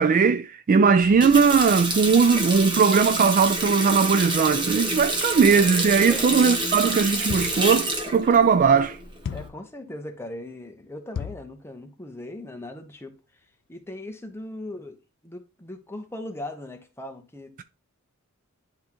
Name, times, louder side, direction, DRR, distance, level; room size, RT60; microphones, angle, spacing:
voice 1, 0.0-9.0, right 5 dB, 40° right, 0.3 m, -19 dB
Water tap faucet, 1.0-9.5, right 2 dB, 20° right, 1.1 m, -28 dB
sound 1, 7.3-7.7 9.2-9.7 11.1-11.5, left 7 dB, 55° left, 0.3 m, -34 dB
voice 2, 9.3-13.2 13.7-15.0 15.2-17.6, left 1 dB, 10° left, 0.9 m, -39 dB
10.0 x 3.6 x 3.0 m
head